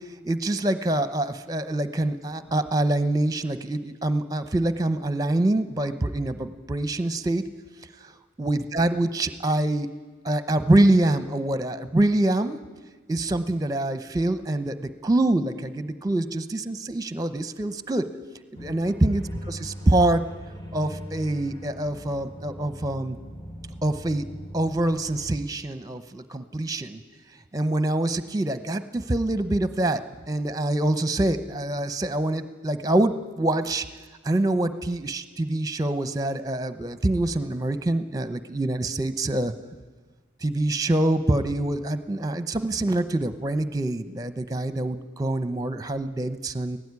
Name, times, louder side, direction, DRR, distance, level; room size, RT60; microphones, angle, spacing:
voice 1, 0.2-7.4 8.4-9.9 10.2-12.6 13.1-18.0 18.6-20.2 20.7-23.2 23.8-24.3 24.5-27.0 27.5-33.9 34.2-39.5 40.4-46.8, right 1 dB, 20° right, 11 dB, 0.9 m, -25 dB
sound 1, 18.5-25.3, equal, 20° left, 1.5 m, -40 dB
17.5 x 17.5 x 9.7 m, 1.4 s
head